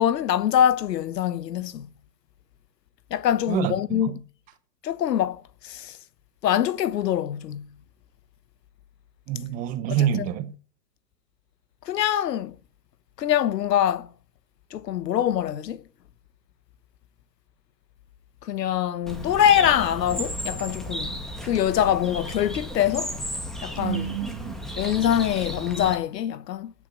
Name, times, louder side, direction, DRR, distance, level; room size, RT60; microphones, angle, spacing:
voice 1, 0.0-1.9 3.1-4.2 4.8-6.0 6.4-7.7 9.9-10.3 11.8-12.6 13.2-14.1 14.7-15.8 18.4-21.1 21.4-23.1 23.6-24.1 24.8-26.7, left 10 dB, 75° left, 1.1 m, -24 dB
voice 2, 3.5-4.1 9.3-10.5 23.8-24.5, right 10 dB, 15° right, 0.6 m, -27 dB
Bird, 19.1-26.0, equal, ahead, 1.5 m, -34 dB
9.7 x 8.8 x 8.7 m
hypercardioid pair, 140°, 50 cm